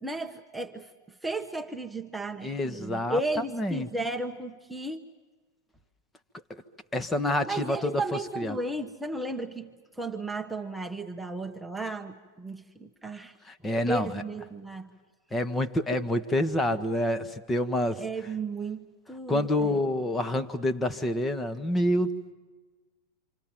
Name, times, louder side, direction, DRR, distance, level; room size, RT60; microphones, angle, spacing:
voice 1, 0.0-5.1 7.5-13.4 13.9-14.9 17.9-19.8, right 2 dB, 5° right, 2 dB, 1.2 m, -34 dB
voice 2, 2.4-3.2 3.5-3.9 6.5-6.6 6.9-7.9 8.4-8.6 13.5-14.2 15.3-18.0 19.3-22.3, left 1 dB, 10° left, 8 dB, 1.4 m, -27 dB
28.5 x 26.5 x 7.4 m, 1.3 s
figure-of-eight pair, 90°, 0 cm